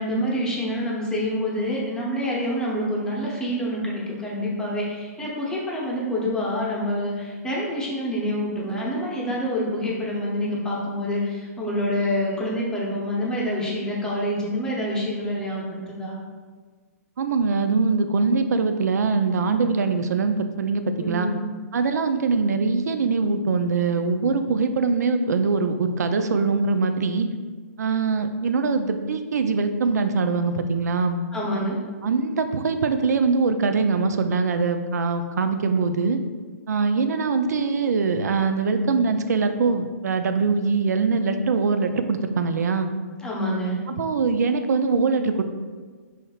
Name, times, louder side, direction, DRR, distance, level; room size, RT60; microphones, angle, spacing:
voice 1, 0.0-16.2 21.0-21.4 31.3-31.8 43.2-43.8, equal, 10° left, -4 dB, 0.7 m, -27 dB
voice 2, 17.2-21.3 21.7-27.3 27.8-31.2 32.0-36.2 36.7-42.9 43.9-45.4, right 4 dB, 90° right, 8 dB, 0.4 m, -22 dB
5.5 x 3.2 x 2.3 m, 1.5 s
hypercardioid pair, 150°, 9 cm